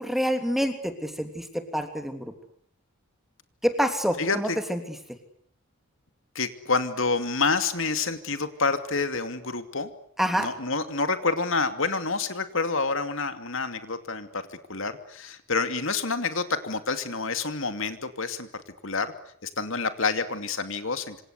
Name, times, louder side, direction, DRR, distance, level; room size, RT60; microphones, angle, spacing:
voice 1, 0.0-2.3 3.6-4.8 10.2-10.5, equal, ahead, 6 dB, 3.2 m, -27 dB
voice 2, 4.2-4.6 6.3-9.9 10.4-14.4 14.7-18.5 18.8-19.1 19.4-21.2, left 4 dB, 60° left, 9 dB, 2.6 m, -28 dB
27.0 x 26.5 x 8.2 m, 0.64 s
head